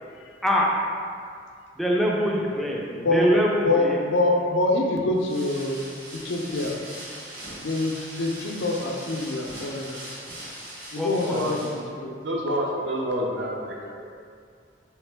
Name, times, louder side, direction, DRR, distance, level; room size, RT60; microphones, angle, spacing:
voice 1, 1.8-4.0 11.0-11.3, equal, ahead, -3 dB, 0.4 m, -24 dB
voice 2, 3.0-3.3 3.6-5.8 6.2-6.8 7.6-10.0 10.9-11.7 12.0-12.2, left 2 dB, 85° left, 1 dB, 0.5 m, -25 dB
sound 1, 5.1-11.8, right 1 dB, 55° right, 1.1 m, -40 dB
voice 3, 11.1-14.0, equal, 80° right, -1 dB, 0.6 m, -29 dB
3.6 x 3.0 x 3.4 m, 2.2 s
head